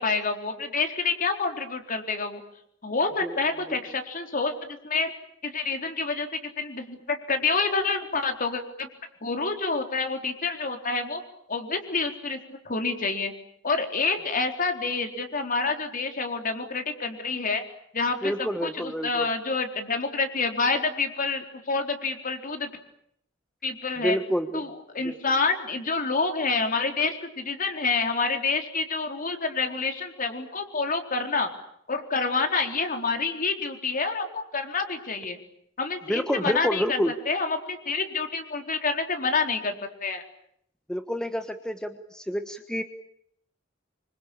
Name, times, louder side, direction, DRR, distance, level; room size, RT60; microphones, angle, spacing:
voice 1, 0.0-2.4 2.8-5.1 5.4-8.9 9.2-11.2 11.5-13.3 13.6-17.6 17.9-22.7 23.6-24.2 24.5-31.5 31.9-35.4 35.8-39.7 40.0-40.2, left 4 dB, 45° left, 5 dB, 4.2 m, -28 dB
voice 2, 18.2-19.3 24.0-24.7 25.0-25.1 36.1-37.1 40.9-42.8, equal, 5° left, 7 dB, 1.3 m, -28 dB
26.5 x 25.0 x 8.8 m, 0.72 s
head